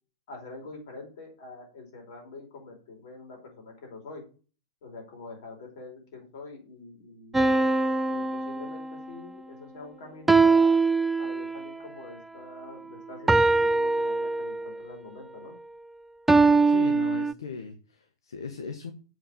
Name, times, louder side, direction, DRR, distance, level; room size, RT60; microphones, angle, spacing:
voice 1, 0.3-4.2 4.8-7.4 8.1-10.8 11.2-15.6, left 3 dB, 55° left, 1 dB, 4.6 m, -45 dB
sound 1, 7.3-9.1 10.3-11.7 13.3-14.8 16.3-17.3, right 3 dB, 10° right, 0.3 m, -22 dB
voice 2, 16.7-18.9, left 5 dB, 70° left, 7 dB, 1.0 m, -37 dB
7.3 x 5.6 x 6.8 m, 0.37 s
figure-of-eight pair, 95°, 2 cm